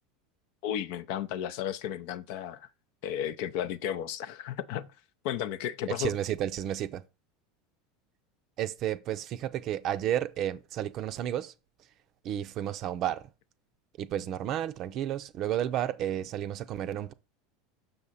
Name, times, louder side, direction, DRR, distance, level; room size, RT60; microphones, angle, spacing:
voice 1, 0.6-2.7 3.0-4.9 5.2-6.1, left 10 dB, 55° left, 0.5 m, -33 dB
voice 2, 5.9-7.0 8.6-11.5 12.2-13.3 14.0-17.1, right 11 dB, 45° right, 0.5 m, -32 dB
6.6 x 5.8 x 4.1 m
figure-of-eight pair, 75°, 0 cm